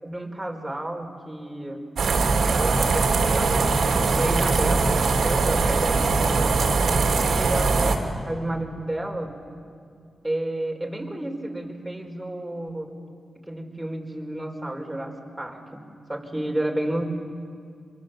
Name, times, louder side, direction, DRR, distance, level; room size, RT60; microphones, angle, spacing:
voice 1, 0.0-1.8 2.5-6.7 7.3-8.0 8.3-9.4 10.2-12.9 13.4-17.0, right 1 dB, 10° right, 1 dB, 4.7 m, -31 dB
sound 1, 2.0-8.0, right 4 dB, 75° right, 2.9 m, -21 dB
26.0 x 23.0 x 7.8 m, 2.3 s
cardioid pair, 55°, 0 cm